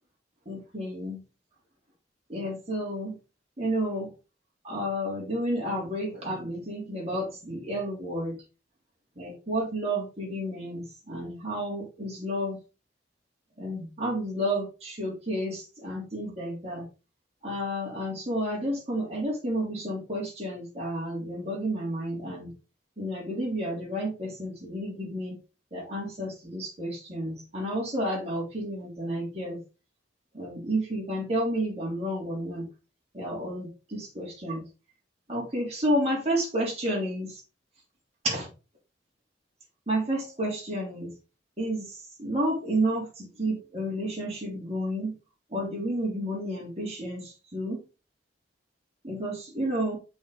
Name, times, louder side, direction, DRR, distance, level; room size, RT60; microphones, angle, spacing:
voice 1, 0.4-1.2 2.3-3.1 3.6-4.1 4.6-8.3 9.2-12.6 13.6-16.8 17.4-22.5 23.0-25.4 25.7-29.6 30.3-32.6 33.1-34.6 35.3-37.3 38.2-38.5 39.9-41.1 41.6-45.1 45.5-47.8 49.0-50.0, right 1 dB, 35° right, -3 dB, 3.3 m, -31 dB
6.8 x 5.1 x 3.9 m, 0.31 s
head